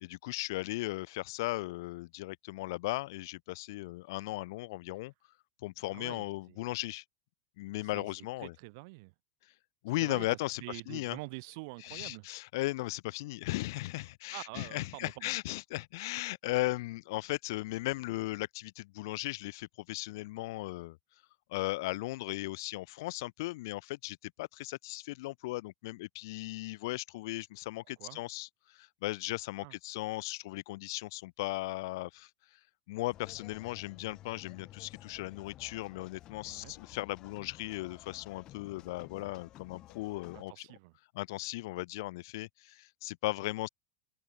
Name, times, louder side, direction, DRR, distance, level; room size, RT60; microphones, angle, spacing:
voice 1, 0.0-5.1 5.6-7.0 7.6-8.5 9.8-10.6 10.9-11.2 11.8-21.0 21.5-32.3 32.9-40.6 41.1-43.7, left 20 dB, 60° left, 0.9 m, -37 dB
voice 2, 5.9-6.7 7.8-9.1 9.9-12.3 14.3-15.3 28.0-28.2 29.6-29.7 36.4-36.7 40.3-41.0, right 28 dB, 50° right, 4.9 m, -46 dB
sound 1, 33.1-40.4, left 14 dB, 30° left, 7.6 m, -53 dB
open air
supercardioid pair, 180°, 2 cm